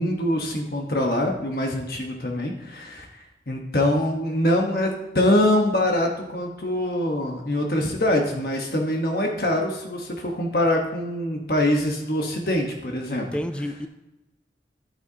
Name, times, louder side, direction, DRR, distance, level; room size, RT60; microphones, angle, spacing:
voice 1, 0.0-4.9 5.1-13.3, left 1 dB, 55° left, 1.2 m, -24 dB
voice 2, 13.1-13.9, equal, 5° left, 0.4 m, -30 dB
11.0 x 9.0 x 2.8 m
head